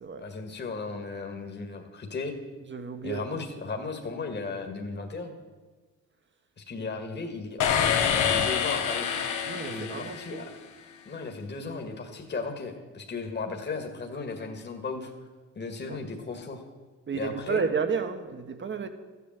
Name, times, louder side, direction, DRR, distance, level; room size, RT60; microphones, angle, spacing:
voice 1, 0.2-2.3 3.0-5.4 6.7-9.1 9.7-10.5 11.1-15.1 15.6-16.6 17.1-17.6, left 4 dB, 35° left, 1.9 m, -35 dB
voice 2, 2.7-3.3 6.8-6.9 9.4-10.5 15.9-16.0 17.1-18.9, right 5 dB, 40° right, 1.4 m, -32 dB
sound 1, 7.6-10.8, left 8 dB, 80° left, 1.3 m, -27 dB
13.5 x 8.4 x 7.5 m
cardioid pair, 90°, 30 cm